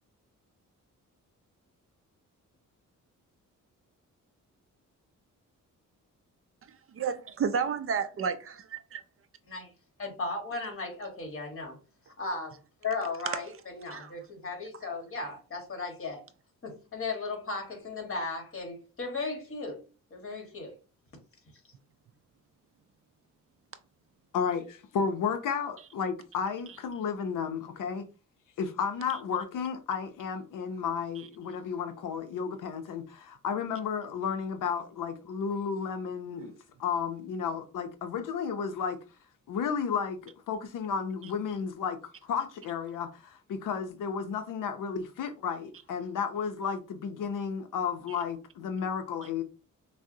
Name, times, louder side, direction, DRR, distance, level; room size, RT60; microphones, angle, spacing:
voice 1, 6.9-9.0 13.9-14.1 36.4-36.5, right 6 dB, 45° right, 0.4 m, -31 dB
voice 2, 10.0-11.8 12.2-12.5 12.8-16.2 16.6-19.8 20.1-20.8, left 3 dB, 40° left, 1.5 m, -36 dB
voice 3, 24.3-28.0 28.6-36.5 36.8-39.0 39.5-49.4, left 6 dB, 75° left, 0.6 m, -33 dB
6.0 x 2.0 x 2.7 m
cardioid pair, 120°, 32 cm